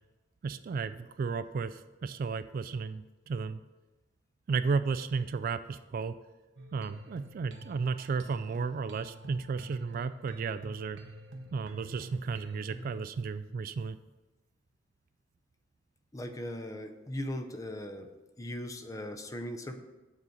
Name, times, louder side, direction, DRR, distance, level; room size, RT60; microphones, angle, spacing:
voice 1, 0.4-3.6 4.5-6.2 6.7-11.0 11.5-14.0, right 5 dB, 50° right, 11 dB, 0.3 m, -33 dB
sound 1, 6.6-13.0, right 1 dB, 80° right, 0.9 m, -47 dB
voice 2, 16.1-18.1 18.4-19.8, left 1 dB, 20° left, 6 dB, 0.6 m, -38 dB
7.3 x 4.1 x 6.4 m, 1.1 s
head